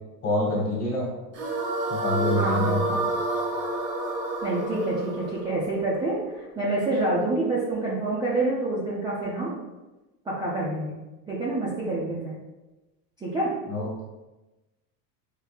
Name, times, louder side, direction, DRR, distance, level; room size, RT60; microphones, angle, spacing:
voice 1, 0.2-1.1 1.9-3.1 13.7-14.1, left 1 dB, 30° left, -3 dB, 1.3 m, -26 dB
sound 1, 1.3-6.5, right 2 dB, 85° right, 1.3 m, -29 dB
voice 2, 2.3-2.8 4.4-9.5 10.3-11.0 11.3-12.3 13.2-13.5, right 2 dB, 10° right, -7 dB, 0.4 m, -27 dB
4.8 x 2.1 x 3.3 m, 1.1 s
supercardioid pair, 135°, 47 cm